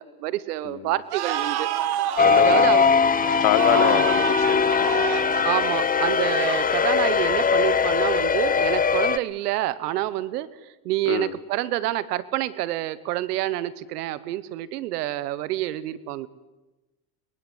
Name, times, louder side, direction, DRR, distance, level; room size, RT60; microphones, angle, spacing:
voice 1, 0.0-1.7 2.4-2.9 3.7-4.0 5.4-16.3, right 15 dB, 85° right, 18 dB, 1.3 m, -28 dB
sound 1, 1.1-7.5, right 11 dB, 55° right, 2.0 m, -30 dB
voice 2, 2.2-2.7 3.4-5.0 11.1-11.3, left 14 dB, 60° left, 16 dB, 1.6 m, -25 dB
sound 2, 2.2-9.2, left 6 dB, 20° left, 0.8 m, -21 dB
22.5 x 22.0 x 8.2 m, 1.1 s
supercardioid pair, 85°, 45 cm